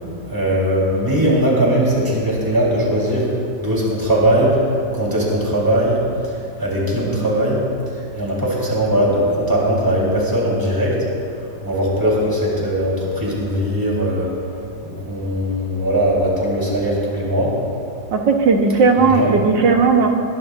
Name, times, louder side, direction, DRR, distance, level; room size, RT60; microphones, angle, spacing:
voice 1, 0.3-3.3 3.6-4.6 4.9-6.0 6.6-7.6 8.1-11.0 11.6-14.3 14.8-17.5 19.0-19.3, right 1 dB, 10° right, -6 dB, 4.1 m, -19 dB
voice 2, 18.1-20.1, right 4 dB, 75° right, 2 dB, 2.0 m, -15 dB
21.5 x 20.0 x 2.7 m, 2.5 s
omnidirectional pair, 2.0 m